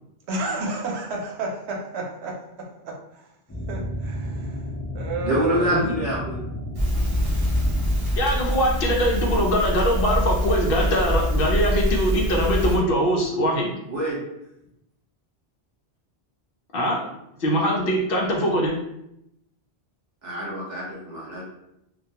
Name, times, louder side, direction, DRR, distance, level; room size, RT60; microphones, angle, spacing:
voice 1, 0.3-2.4 2.8-3.2 3.7-4.7 4.9-5.8, right 3 dB, 85° right, 0 dB, 0.8 m, -31 dB
sound 1, 3.5-8.5, left 1 dB, 25° left, 0.3 m, -32 dB
voice 2, 5.2-6.4 13.9-14.2 20.2-21.5, equal, 45° right, -6 dB, 1.0 m, -26 dB
Crackle, 6.7-12.8, equal, 30° right, 0.5 m, -24 dB
voice 3, 8.2-13.7 16.7-17.1 17.4-18.7, equal, 65° left, -2 dB, 0.7 m, -22 dB
2.3 x 2.2 x 2.7 m, 0.82 s
omnidirectional pair, 1.1 m